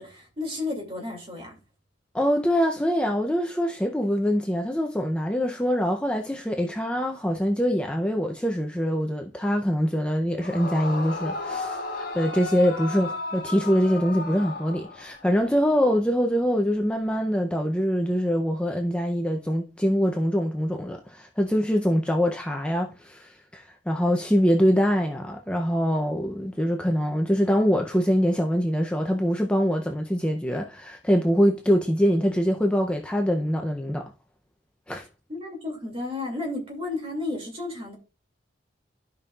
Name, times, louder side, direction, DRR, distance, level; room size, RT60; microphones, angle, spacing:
voice 1, 0.0-1.5 35.3-38.0, left 2 dB, 30° right, 2.4 m, -32 dB
voice 2, 2.1-34.1 34.9-35.1, equal, 5° left, 0.5 m, -24 dB
Yell / Screaming, 10.4-15.3, left 3 dB, 50° left, 1.7 m, -34 dB
12.5 x 5.3 x 2.4 m
head